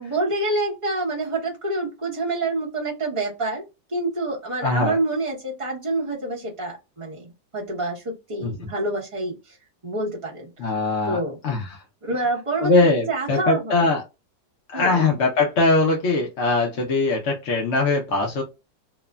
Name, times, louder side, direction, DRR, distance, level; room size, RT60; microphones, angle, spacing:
voice 1, 0.0-9.6 9.8-10.5 11.0-11.4 12.0-13.9 14.7-15.0, right 2 dB, 25° right, -4 dB, 0.7 m, -27 dB
voice 2, 4.6-5.0 8.4-8.5 10.6-11.8 12.6-14.0 14.7-18.4, left 3 dB, 65° left, 0 dB, 0.7 m, -21 dB
3.0 x 2.1 x 2.3 m, 0.27 s
omnidirectional pair, 1.9 m